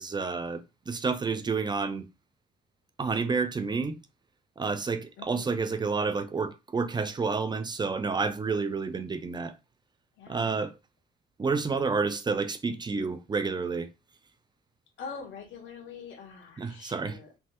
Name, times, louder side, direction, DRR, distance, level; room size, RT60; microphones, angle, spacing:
voice 1, 0.0-2.1 3.0-4.0 4.6-9.5 10.3-10.7 11.4-13.9 16.6-17.2, right 4 dB, 20° right, 0.4 m, -29 dB
voice 2, 5.2-5.7 10.2-10.7 15.0-17.3, left 5 dB, 75° left, 1.1 m, -44 dB
3.3 x 2.0 x 2.9 m
cardioid pair, 90°, 20 cm